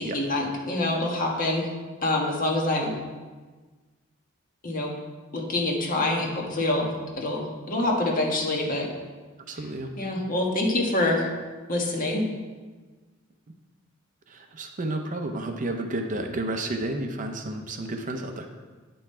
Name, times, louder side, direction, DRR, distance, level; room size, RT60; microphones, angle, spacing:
voice 1, 0.0-1.7 2.0-3.0 4.6-4.9 5.3-8.9 10.0-11.3 11.7-12.2, left 2 dB, 40° left, -1 dB, 1.4 m, -26 dB
voice 2, 9.5-9.9 14.3-18.5, right 2 dB, 40° right, 5 dB, 0.6 m, -31 dB
9.4 x 5.5 x 4.3 m, 1.3 s
head